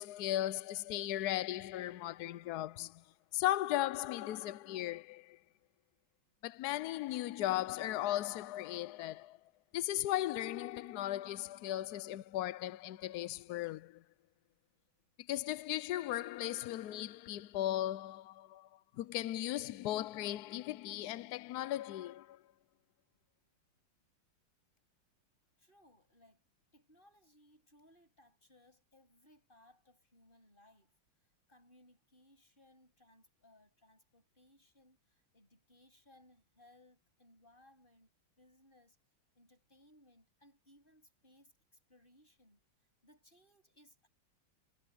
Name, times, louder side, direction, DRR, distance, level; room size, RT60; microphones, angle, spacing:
voice 1, 0.0-3.0 3.3-5.4 6.4-9.4 9.7-14.0 15.3-22.4, left 14 dB, 80° left, 0.8 m, -37 dB
voice 2, 25.6-26.4 26.7-31.0 31.5-39.0 39.3-42.6 43.0-44.1, left 1 dB, 25° left, 8.1 m, -65 dB
omnidirectional pair, 2.3 m